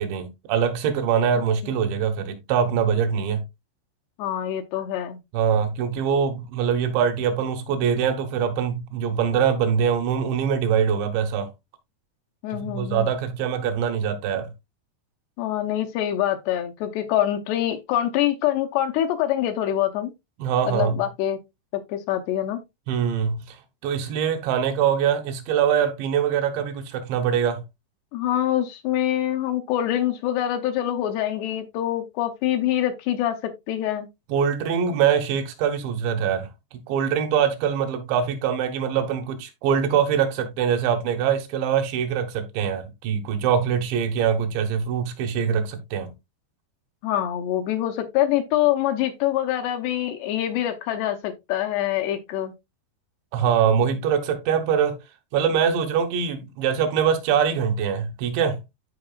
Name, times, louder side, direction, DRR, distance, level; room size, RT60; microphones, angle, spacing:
voice 1, 0.0-3.5 5.3-11.5 12.5-14.5 20.4-21.0 22.9-23.6 23.8-27.6 34.3-36.5 36.9-46.1 53.3-55.0 55.3-58.6, right 7 dB, 80° right, 3.4 m, -23 dB
voice 2, 4.2-5.2 12.4-13.1 15.4-20.1 20.6-21.4 21.7-22.6 28.1-34.1 47.0-52.5, left 12 dB, 80° left, 2.7 m, -25 dB
14.0 x 4.7 x 2.3 m
omnidirectional pair, 5.1 m